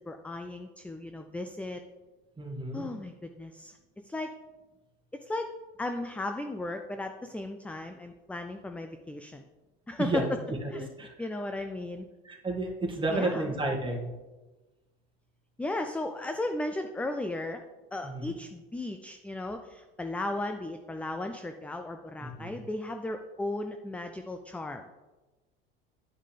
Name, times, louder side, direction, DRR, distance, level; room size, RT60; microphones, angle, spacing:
voice 1, 0.1-1.8 2.7-3.7 4.0-4.3 5.2-5.5 5.8-9.4 9.9-10.3 10.7-10.9 11.2-12.1 13.1-13.5 15.6-17.6 17.9-24.8, left 2 dB, 5° left, 6 dB, 0.4 m, -35 dB
voice 2, 2.4-2.9 10.0-10.3 10.6-11.1 12.3-14.1 18.0-18.3 22.2-22.6, right 2 dB, 15° right, -1 dB, 1.9 m, -32 dB
10.5 x 5.3 x 3.3 m, 1.2 s
hypercardioid pair, 90°, 29 cm